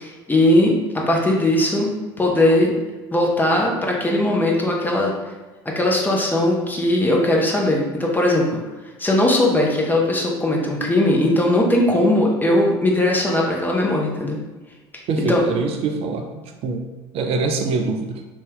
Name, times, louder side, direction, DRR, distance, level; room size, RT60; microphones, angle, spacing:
voice 1, 0.0-2.7 3.1-5.1 5.7-8.6 9.0-14.4 15.3-15.4, left 1 dB, 15° left, -1 dB, 0.7 m, -19 dB
voice 2, 15.1-16.3 16.6-16.8 17.1-18.2, right 4 dB, 45° right, 4 dB, 0.4 m, -23 dB
2.6 x 2.3 x 3.6 m, 1.2 s
hypercardioid pair, 65°, 13 cm